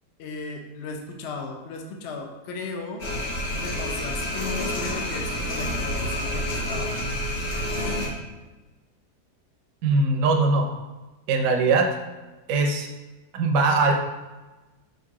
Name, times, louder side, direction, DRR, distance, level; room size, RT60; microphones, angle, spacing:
voice 1, 0.2-3.0 3.5-7.0, left 3 dB, 65° left, 2 dB, 0.6 m, -36 dB
sound 1, 3.0-8.1, left 1 dB, 50° left, 1.0 m, -28 dB
voice 2, 9.8-10.7 11.3-11.9 12.5-12.9 13.3-13.9, right 3 dB, 65° right, 3 dB, 0.9 m, -21 dB
3.8 x 2.6 x 4.6 m, 1.2 s
omnidirectional pair, 1.8 m